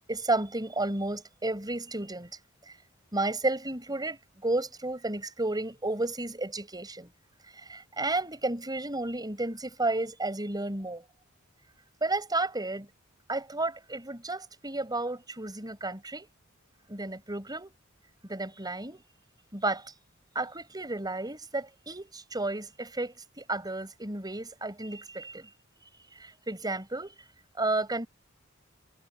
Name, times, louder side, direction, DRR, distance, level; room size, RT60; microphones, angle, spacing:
voice 1, 0.1-2.3 3.1-7.1 7.6-11.0 12.0-12.9 13.3-16.3 16.9-17.7 18.2-19.0 19.5-19.9 20.3-25.5 26.2-27.2 27.6-28.1, right 2 dB, 20° right, 7.4 m, -32 dB
head